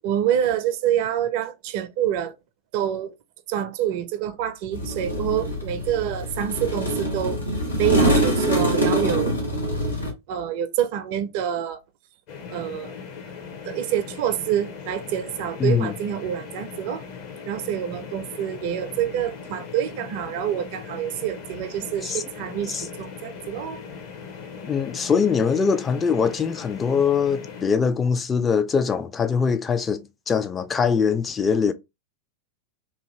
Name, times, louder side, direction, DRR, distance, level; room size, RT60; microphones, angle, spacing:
voice 1, 0.0-2.4 2.7-3.1 3.5-7.4 7.8-9.4 10.3-11.8 12.5-12.9 13.7-17.0 17.4-23.8, right 10 dB, 50° right, 0.4 m, -27 dB
sound 1, 4.7-10.1, right 1 dB, 85° left, 1.1 m, -24 dB
sound 2, 12.3-27.6, left 6 dB, 45° left, 0.8 m, -39 dB
voice 2, 15.6-15.9 22.0-22.2 22.7-22.9 24.6-31.7, left 6 dB, 20° left, 0.4 m, -22 dB
2.7 x 2.6 x 3.0 m
figure-of-eight pair, 90°, 0 cm